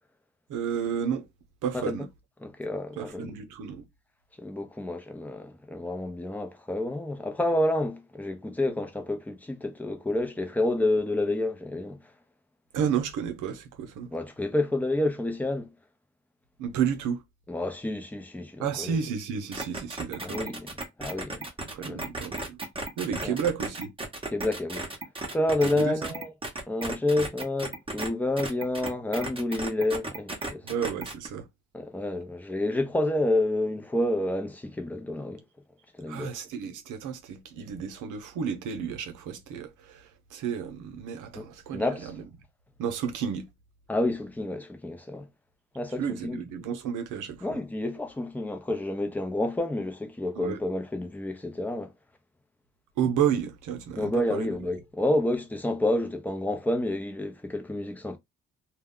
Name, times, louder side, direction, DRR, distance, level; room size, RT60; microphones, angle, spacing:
voice 1, 0.5-1.3 1.6-2.1 3.0-3.8 12.7-14.1 16.6-17.2 18.6-20.5 21.6-22.6 23.0-23.9 25.6-26.0 30.6-31.5 36.1-42.2 42.8-43.5 46.0-47.6 50.3-50.6 53.0-54.5, right 8 dB, 85° right, 0.7 m, -31 dB
voice 2, 2.4-3.3 4.4-12.0 14.1-15.7 17.5-19.0 20.2-20.7 21.0-21.4 21.8-22.0 23.2-23.4 24.3-24.9 25.3-26.3 26.7-30.7 31.7-35.4 36.0-36.3 41.3-41.4 41.7-42.1 43.9-45.3 45.7-46.4 47.4-51.9 54.0-58.2, left 1 dB, 5° left, 0.6 m, -29 dB
sound 1, 19.5-28.1 28.4-31.3, right 2 dB, 20° right, 0.9 m, -35 dB
2.3 x 2.1 x 3.6 m
cardioid pair, 90°, 30 cm